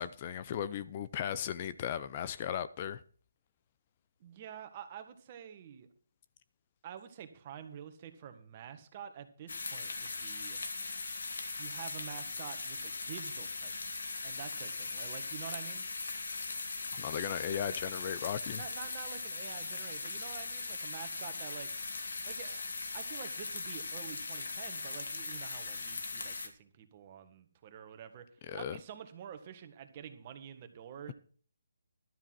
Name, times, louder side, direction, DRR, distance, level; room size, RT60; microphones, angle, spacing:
voice 1, 0.0-3.0 16.9-18.6 28.5-28.8, left 9 dB, 35° left, 0.6 m, -36 dB
voice 2, 4.2-5.9 6.8-10.6 11.6-15.8 18.5-21.7 22.2-22.7 22.9-28.3 28.5-31.1, right 9 dB, 35° right, 1.7 m, -48 dB
sound 1, 9.5-26.5, left 3 dB, 75° left, 2.3 m, -40 dB
12.5 x 7.3 x 6.0 m
hypercardioid pair, 155°, 0 cm